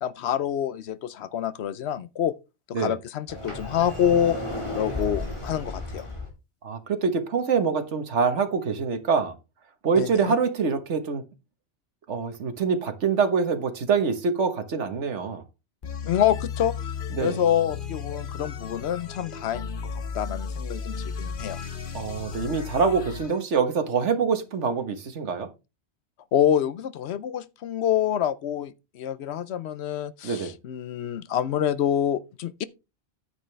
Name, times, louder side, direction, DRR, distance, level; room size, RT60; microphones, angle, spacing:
voice 1, 0.0-2.3 2.7-4.4 4.7-6.1 10.0-10.4 16.0-16.7 17.2-19.9 20.1-21.6 26.3-32.6, left 10 dB, 70° left, 0.9 m, -26 dB
Sliding door, 3.3-6.3, left 2 dB, 25° left, 3.8 m, -33 dB
voice 2, 6.6-9.4 9.8-11.2 12.1-15.4 17.1-17.4 21.9-25.5 30.2-30.5, right 5 dB, 90° right, 1.6 m, -25 dB
sound 1, 15.8-23.4, left 6 dB, 50° left, 1.1 m, -34 dB
9.5 x 8.9 x 3.3 m
omnidirectional pair, 1.2 m